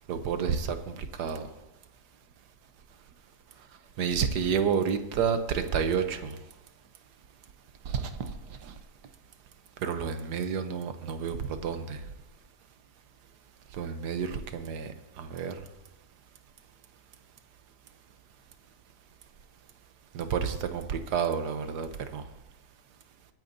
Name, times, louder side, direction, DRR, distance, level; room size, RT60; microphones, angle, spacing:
voice 1, 0.1-1.4 4.0-6.3 7.9-8.3 9.8-12.0 13.8-14.9 15.2-15.5 20.1-22.2, right 6 dB, 75° right, 8 dB, 1.4 m, -30 dB
22.5 x 8.9 x 2.7 m, 1.0 s
omnidirectional pair, 1.8 m